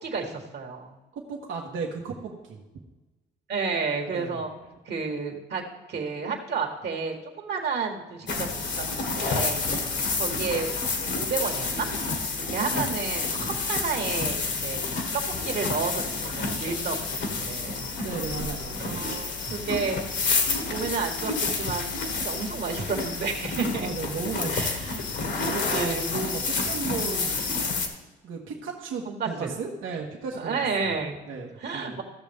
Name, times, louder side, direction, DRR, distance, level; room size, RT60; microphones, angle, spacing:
voice 1, 0.0-1.0 3.5-4.5 4.8-9.7 10.2-11.9 12.5-15.0 15.4-17.0 17.3-17.9 18.8-20.3 20.7-22.0 22.2-23.9 24.5-25.0 25.5-26.0 29.0-29.5 30.3-31.3 31.6-32.0, right 5 dB, 55° right, 2 dB, 1.7 m, -31 dB
voice 2, 1.1-2.6 4.1-4.4 9.7-10.1 18.0-19.0 23.8-24.9 25.3-27.5 28.2-30.5 31.3-32.0, right 5 dB, 80° right, -1 dB, 1.4 m, -35 dB
sound 1, 8.3-27.9, left 4 dB, 65° left, 1.7 m, -29 dB
15.0 x 6.5 x 3.6 m, 1.1 s
cardioid pair, 90°, 20 cm